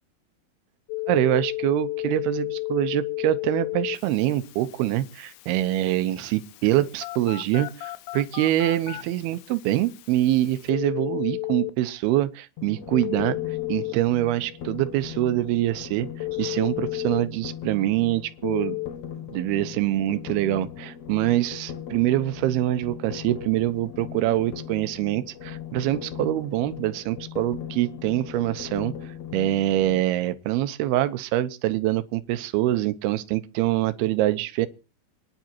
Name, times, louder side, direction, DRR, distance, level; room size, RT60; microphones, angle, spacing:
Telephone, 0.9-11.7 12.9-13.9 16.2-17.2 18.4-18.9, left 23 dB, 85° left, 3.2 m, -33 dB
voice 1, 1.1-13.4 13.7-16.1 16.4-18.8 19.3-28.9 29.3-34.7, right 14 dB, 75° right, 2.6 m, -25 dB
sound 1, 12.6-30.0, left 9 dB, 55° left, 1.8 m, -39 dB
27.5 x 10.5 x 2.9 m
omnidirectional pair, 5.1 m